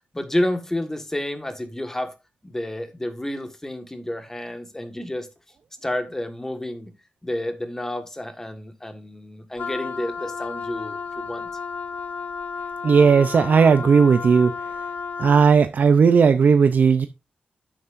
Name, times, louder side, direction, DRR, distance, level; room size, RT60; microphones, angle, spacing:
voice 1, 0.1-2.1 2.4-5.3 5.8-6.9 7.2-11.5, left 1 dB, 15° left, 1.6 m, -30 dB
Wind instrument woodwind instrument, 9.6-15.6, left 5 dB, 60° left, 0.7 m, -32 dB
voice 2, 12.8-14.5 15.2-17.1, right 5 dB, 65° right, 0.6 m, -16 dB
9.9 x 8.3 x 2.6 m
wide cardioid pair, 90°, 3 cm